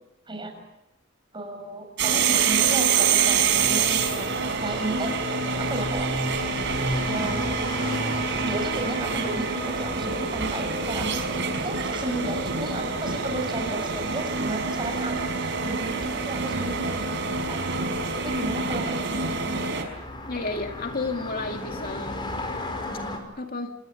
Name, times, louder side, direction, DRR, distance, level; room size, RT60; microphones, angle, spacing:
voice 1, 0.3-0.6 1.3-4.3 4.6-5.2 5.6-6.1 7.1-7.4 8.4-17.6 18.1-19.6, right 2 dB, 25° right, 4 dB, 6.8 m, -33 dB
sound 1, 2.0-19.8, right 5 dB, 60° right, 5.1 m, -26 dB
sound 2, 3.3-23.2, left 1 dB, 25° left, 5.2 m, -36 dB
voice 2, 20.3-22.2 23.4-23.7, left 3 dB, 45° left, 4 dB, 2.2 m, -32 dB
28.0 x 18.5 x 8.5 m, 0.92 s
head